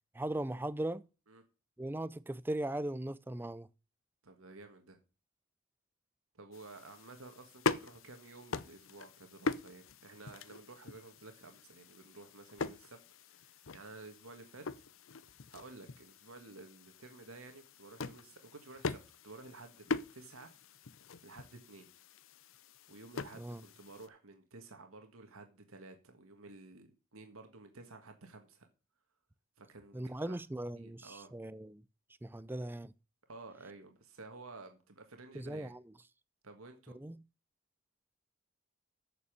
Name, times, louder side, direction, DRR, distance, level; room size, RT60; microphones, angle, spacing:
voice 1, 0.1-1.0 1.8-3.7 23.4-23.6 29.9-31.8 32.2-32.9 35.3-35.8 36.9-37.2, right 1 dB, 10° right, 0.4 m, -38 dB
voice 2, 4.2-5.0 6.3-13.0 13.2-14.9 15.2-20.5 21.2-21.9 22.9-28.7 29.6-30.4 30.8-31.3 33.3-35.7 36.4-37.0, right 3 dB, 80° right, 1.7 m, -53 dB
sound 1, 6.5-24.1, left 4 dB, 70° left, 0.7 m, -42 dB
8.4 x 6.9 x 6.7 m
head